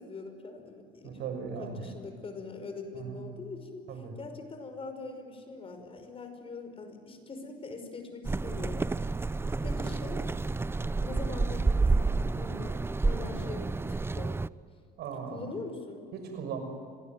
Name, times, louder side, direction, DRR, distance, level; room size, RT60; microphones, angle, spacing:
voice 1, 0.0-1.2 1.6-8.9 9.4-10.3 10.9-14.3 15.3-16.1, left 3 dB, 35° left, 6 dB, 5.6 m, -43 dB
voice 2, 1.0-1.7 3.0-3.2 3.9-4.1 15.0-15.4 16.1-16.6, right 6 dB, 75° right, 6 dB, 6.1 m, -37 dB
sound 1, 8.2-14.5, right 3 dB, 15° right, 0.6 m, -29 dB
26.5 x 20.5 x 9.3 m, 2.3 s
cardioid pair, 110°, 17 cm